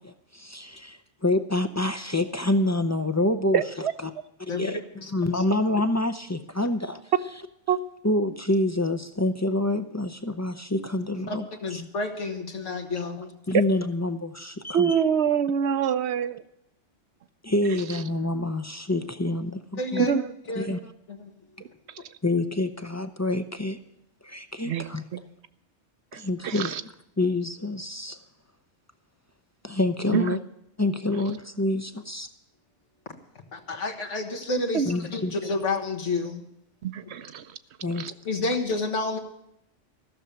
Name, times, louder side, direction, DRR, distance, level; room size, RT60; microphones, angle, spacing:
voice 1, 0.0-3.6 4.0-4.1 4.4-7.1 8.0-11.4 11.7-11.8 13.5-15.0 17.4-20.1 20.6-20.8 22.2-23.8 24.2-25.0 26.1-26.8 27.2-28.2 29.6-30.4 30.8-32.3 34.8-35.3 37.8-38.1, left 2 dB, 25° left, 8 dB, 0.4 m, -27 dB
voice 2, 3.5-3.9 7.7-7.8 14.7-16.4 20.0-20.3 24.6-24.8 26.1-26.8 30.1-30.4 34.7-34.9 36.8-37.5 37.9-38.1, right 8 dB, 65° right, 13 dB, 0.9 m, -25 dB
voice 3, 4.5-5.4 11.3-13.3 19.8-20.2 20.5-20.7 21.1-21.3 33.5-36.4 38.3-39.2, left 3 dB, 80° left, 3 dB, 1.8 m, -30 dB
15.0 x 6.8 x 8.8 m, 0.79 s
omnidirectional pair, 1.2 m